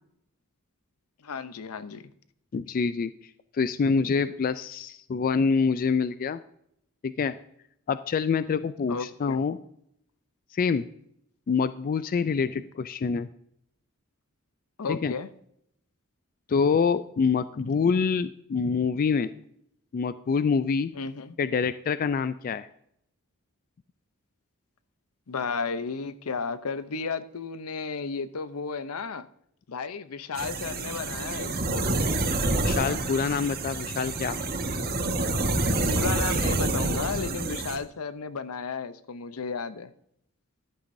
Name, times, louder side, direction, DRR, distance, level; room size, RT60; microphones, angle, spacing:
voice 1, 1.2-2.1 8.9-9.4 14.8-15.3 20.9-21.4 25.3-29.3 29.7-32.0 35.8-39.9, left 5 dB, 80° left, 13 dB, 0.6 m, -33 dB
voice 2, 2.5-3.1 3.5-6.4 7.0-7.4 7.9-9.6 10.5-10.8 11.5-13.3 14.9-15.1 16.5-19.3 19.9-20.9 21.4-22.7 32.5-34.4, left 5 dB, 40° left, 14 dB, 0.3 m, -26 dB
sound 1, 30.3-37.8, right 2 dB, 45° right, 1.4 m, -27 dB
14.0 x 11.5 x 2.6 m, 0.73 s
head